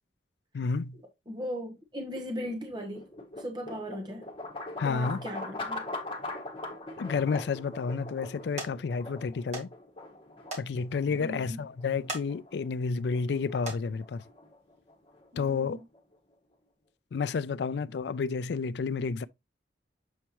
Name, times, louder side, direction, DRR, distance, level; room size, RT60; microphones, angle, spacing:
voice 1, 0.5-1.0 4.8-5.2 7.0-9.7 10.6-14.2 15.4-15.8 17.1-19.3, left 5 dB, 65° left, 0.4 m, -30 dB
voice 2, 1.3-3.1 3.4-4.3 4.8-5.8 11.1-11.6 15.3-15.8, equal, 25° right, 1.0 m, -38 dB
sound 1, 2.1-16.2, left 2 dB, 30° left, 1.3 m, -42 dB
sound 2, 7.1-7.6 8.1-8.3 8.6-8.7 9.5-9.7 10.0-10.1 10.5-10.7 11.1-11.2 11.9-12.3 12.8-13.0 13.5-13.8 14.8-14.9 15.4-15.5, right 2 dB, 40° right, 1.9 m, -38 dB
7.3 x 4.5 x 2.9 m
head